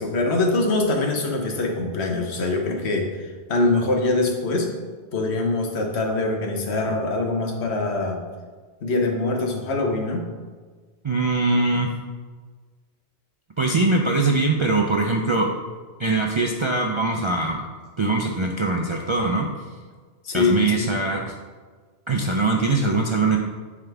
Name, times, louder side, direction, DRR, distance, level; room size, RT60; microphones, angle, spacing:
voice 1, 0.0-4.7 5.1-8.2 8.8-10.3 20.2-20.9, left 2 dB, 75° left, 2 dB, 1.2 m, -23 dB
voice 2, 11.0-11.9 13.6-15.5 16.0-17.6 18.0-19.5 20.3-21.3 22.1-23.4, right 3 dB, 50° right, 0 dB, 0.3 m, -22 dB
9.1 x 3.7 x 3.4 m, 1.5 s
omnidirectional pair, 1.1 m